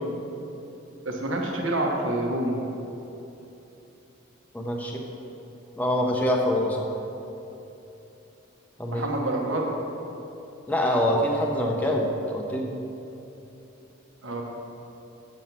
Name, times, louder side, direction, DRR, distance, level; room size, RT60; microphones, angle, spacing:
voice 1, 1.0-2.5 8.9-9.7 14.2-14.4, right 1 dB, 70° right, 0 dB, 1.2 m, -27 dB
voice 2, 4.5-5.0 5.8-6.8 8.8-9.1 10.7-12.7, left 1 dB, 5° left, -1 dB, 0.6 m, -25 dB
7.3 x 7.0 x 6.0 m, 2.9 s
head